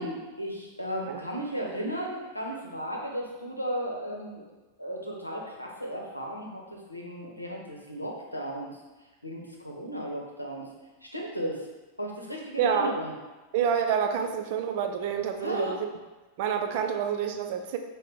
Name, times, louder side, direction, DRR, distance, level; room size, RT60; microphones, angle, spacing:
voice 1, 0.0-4.5 4.8-8.7 9.2-10.7 11.1-11.6 12.0-13.1 15.4-15.8, equal, 85° left, -1 dB, 0.7 m, -35 dB
voice 2, 12.6-12.9 13.5-15.9 16.4-17.8, right 7 dB, 50° right, 5 dB, 0.4 m, -28 dB
5.5 x 2.1 x 3.6 m, 1.2 s
figure-of-eight pair, 90°, 0 cm